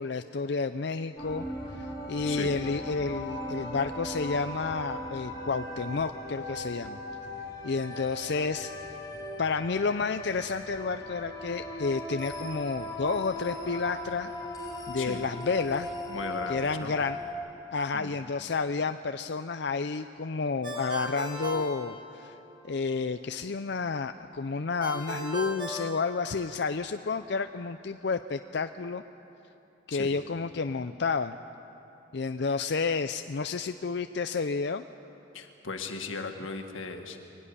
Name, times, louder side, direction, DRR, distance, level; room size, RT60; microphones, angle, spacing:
voice 1, 0.0-1.5 1.8-7.0 7.6-8.7 9.4-14.3 14.9-15.9 16.5-17.2 17.7-22.4 22.6-29.0 29.9-31.4 32.1-34.8, left 4 dB, 60° left, 9 dB, 0.5 m, -30 dB
sound 1, 1.2-17.3, left 1 dB, 20° left, 5.0 m, -38 dB
voice 2, 16.1-16.9 17.9-18.2 29.9-30.1 35.3-37.2, left 3 dB, 90° left, 5 dB, 2.0 m, -37 dB
Ringtone, 20.6-22.6 24.8-26.8, equal, 25° right, 5.2 m, -37 dB
23.0 x 17.0 x 9.9 m, 3.0 s
head